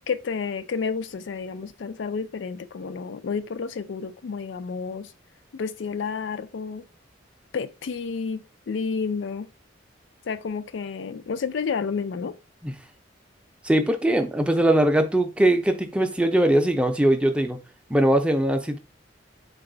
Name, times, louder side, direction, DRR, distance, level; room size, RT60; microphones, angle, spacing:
voice 1, 0.1-5.1 5.5-6.9 7.5-9.5 10.3-12.4, left 5 dB, 75° left, 0.4 m, -30 dB
voice 2, 13.6-17.6 17.9-18.8, right 1 dB, 5° right, 0.5 m, -21 dB
3.9 x 2.3 x 3.8 m
head